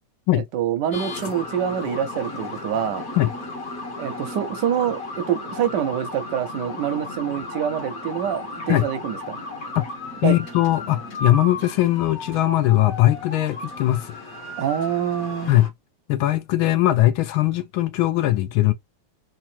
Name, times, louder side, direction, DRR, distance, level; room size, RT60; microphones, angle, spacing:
voice 1, 0.3-3.1 4.0-9.4 10.2-10.3 14.6-15.6, right 9 dB, 70° right, 1.1 m, -26 dB
sound 1, 0.9-15.7, left 2 dB, 45° left, 1.3 m, -34 dB
voice 2, 10.2-14.2 15.5-15.7 16.1-18.7, left 15 dB, 75° left, 1.3 m, -20 dB
3.6 x 3.1 x 4.3 m
omnidirectional pair, 2.4 m